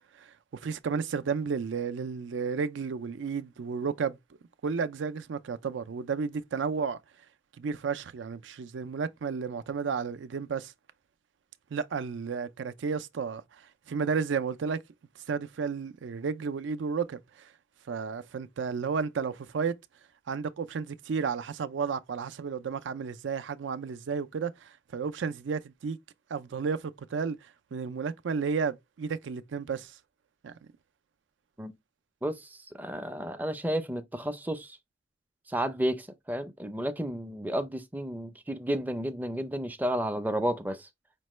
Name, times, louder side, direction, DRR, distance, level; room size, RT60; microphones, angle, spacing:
voice 1, 0.2-4.2 4.6-7.0 7.6-10.7 11.7-14.8 15.3-17.5 17.9-19.8 20.3-26.0 26.3-30.0 30.4-30.6, right 5 dB, 75° right, 0.4 m, -32 dB
voice 2, 32.2-34.8 35.5-40.9, right 1 dB, 10° right, 0.4 m, -32 dB
5.2 x 2.2 x 3.0 m
head